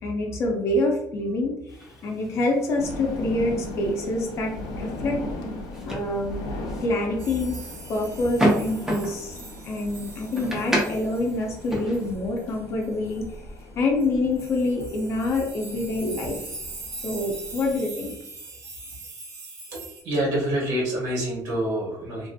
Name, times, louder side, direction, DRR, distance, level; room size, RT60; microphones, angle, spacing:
voice 1, 0.0-4.5 4.8-5.2 5.9-6.5 6.8-7.6 7.9-9.4 9.6-13.4 13.7-16.4 17.0-18.1, left 2 dB, 40° left, 0 dB, 0.6 m, -26 dB
sound 1, 1.7-12.1, right 1 dB, 5° right, 0.4 m, -32 dB
sound 2, 2.8-17.8, left 1 dB, 85° left, 0.5 m, -38 dB
sound 3, 7.2-13.3 14.0-14.1 14.4-20.0, right 3 dB, 60° right, 1.0 m, -42 dB
voice 2, 19.7-22.3, right 1 dB, 75° right, -4 dB, 1.3 m, -27 dB
2.6 x 2.4 x 2.6 m, 0.78 s
cardioid pair, 180°, 7 cm